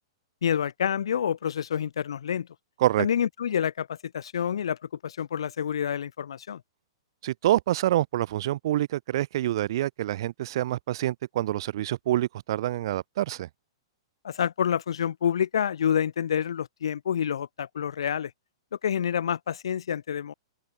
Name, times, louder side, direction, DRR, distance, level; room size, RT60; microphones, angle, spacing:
voice 1, 0.4-2.5 3.0-4.8 5.0-6.6 14.2-18.3 18.8-20.3, left 8 dB, 80° left, 1.7 m, -28 dB
voice 2, 7.2-13.5, right 13 dB, 60° right, 1.1 m, -26 dB
open air
hypercardioid pair, 135°, 3 cm